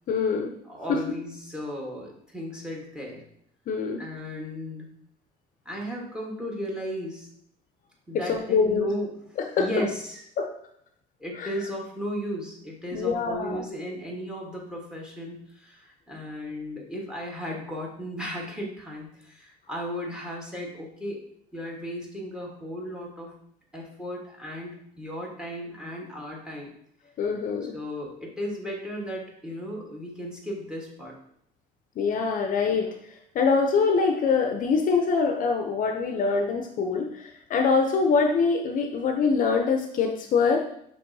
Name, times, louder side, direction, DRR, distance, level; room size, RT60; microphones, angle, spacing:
voice 1, 0.1-0.5 0.9-1.0 3.7-4.0 8.1-8.9 9.5-9.7 10.4-10.5 11.4-11.5 12.9-13.6 27.2-27.8 32.0-32.9 33.3-40.6, left 5 dB, 55° left, 4 dB, 0.5 m, -24 dB
voice 2, 0.6-3.2 4.0-4.9 5.6-7.3 8.1-9.2 9.6-10.2 11.2-21.2 21.5-23.3 23.7-26.7 27.6-31.1, equal, 5° right, -1 dB, 1.2 m, -35 dB
6.3 x 3.0 x 2.6 m, 0.70 s
cardioid pair, 110°, 17 cm